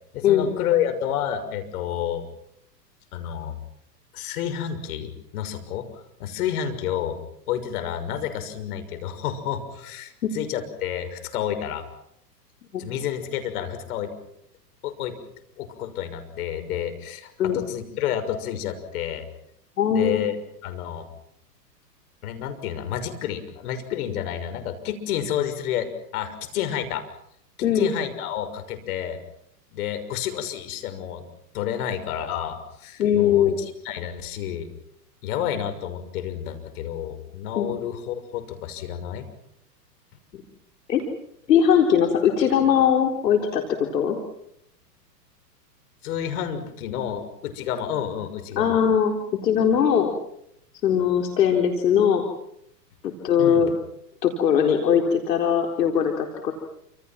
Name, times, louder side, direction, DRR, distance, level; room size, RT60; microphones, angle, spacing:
voice 1, 0.1-2.2 3.1-3.5 4.1-7.2 7.5-11.8 12.8-14.1 14.8-15.2 15.6-19.3 19.9-20.4 20.6-21.1 22.2-27.0 27.6-29.2 29.7-31.3 31.5-33.5 33.8-34.7 35.2-39.3 46.0-48.8 53.4-53.7, left 10 dB, 60° left, 8 dB, 6.3 m, -30 dB
voice 2, 19.8-20.3 27.6-27.9 33.0-33.6 37.6-37.7 40.3-40.4 40.9-41.0 41.5-43.6 43.9-44.2 48.6-49.2 49.4-50.1 50.8-52.2 53.0-53.7 54.2-56.5, left 8 dB, 75° left, 3 dB, 4.3 m, -20 dB
29.0 x 27.5 x 6.1 m, 0.74 s
hypercardioid pair, 120°, 49 cm